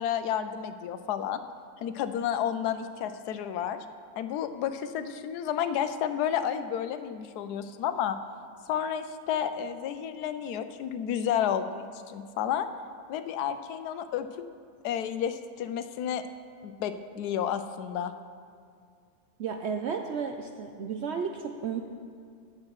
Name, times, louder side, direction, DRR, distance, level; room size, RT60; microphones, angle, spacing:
voice 1, 0.0-1.4 1.8-3.8 4.2-8.2 8.7-12.7 13.1-14.3 14.8-16.2 16.6-18.1, left 9 dB, 90° left, 10 dB, 1.1 m, -31 dB
voice 2, 19.4-21.8, right 6 dB, 70° right, 5 dB, 0.6 m, -33 dB
17.0 x 7.6 x 3.0 m, 2.2 s
omnidirectional pair, 1.6 m